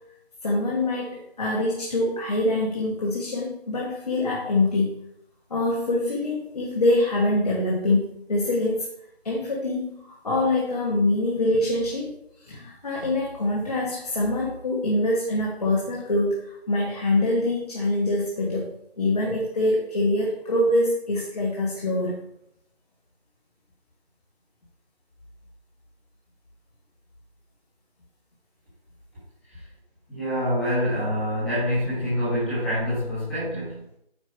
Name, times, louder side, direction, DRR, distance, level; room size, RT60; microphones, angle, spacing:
voice 1, 0.4-5.0 5.5-8.9 9.2-12.1 12.4-18.7 19.0-22.2, left 1 dB, 40° left, -3 dB, 1.5 m, -24 dB
voice 2, 30.1-33.8, equal, ahead, -14 dB, 1.0 m, -26 dB
8.8 x 5.0 x 4.6 m, 0.76 s
figure-of-eight pair, 165°, 32 cm